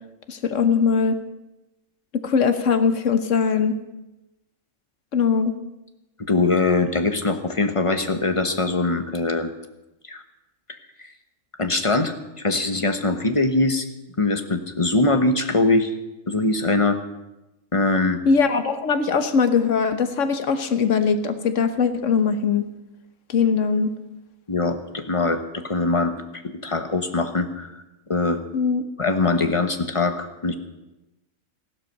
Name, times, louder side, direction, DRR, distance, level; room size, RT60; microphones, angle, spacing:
voice 1, 0.3-1.2 2.1-3.8 5.1-5.5 18.3-22.7 23.3-23.9 28.5-28.8, left 5 dB, 65° left, 9 dB, 1.4 m, -21 dB
voice 2, 6.3-9.5 10.1-10.2 10.7-11.1 11.6-13.9 14.2-15.9 16.3-17.0 17.7-18.2 24.5-27.8 28.1-28.4 29.0-30.5, left 3 dB, 25° left, 7 dB, 1.0 m, -22 dB
15.0 x 12.0 x 6.6 m, 0.98 s
omnidirectional pair, 1.4 m